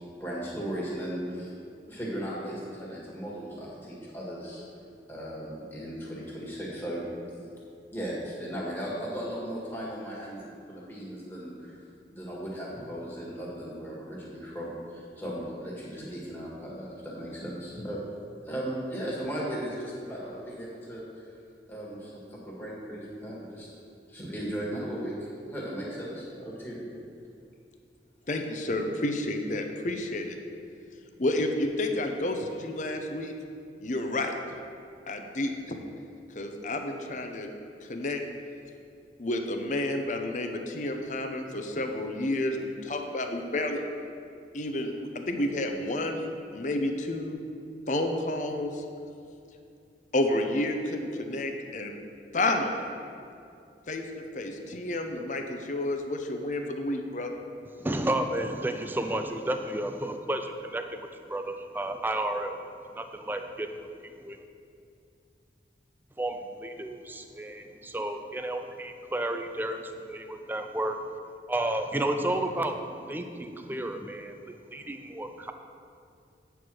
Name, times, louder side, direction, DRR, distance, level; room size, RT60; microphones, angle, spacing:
voice 1, 0.2-1.5 1.9-4.6 5.1-7.0 7.3-7.4 7.9-11.8 12.1-18.0 18.4-21.0 21.7-23.7 24.1-26.9, equal, 10° left, -6 dB, 1.7 m, -37 dB
voice 2, 28.3-30.4 31.2-33.3 33.8-34.3 35.1-35.8 36.3-37.5 37.8-38.2 39.2-43.8 44.5-47.4 47.9-48.8 50.1-52.0 52.3-52.9 53.9-57.4, left 1 dB, 45° left, 5 dB, 0.7 m, -30 dB
voice 3, 57.8-62.6 63.0-63.8 64.2-64.4 66.2-69.8 70.1-71.0 71.5-74.4 74.7-75.5, right 1 dB, 10° right, 6 dB, 0.4 m, -32 dB
8.7 x 4.6 x 6.2 m, 2.5 s
head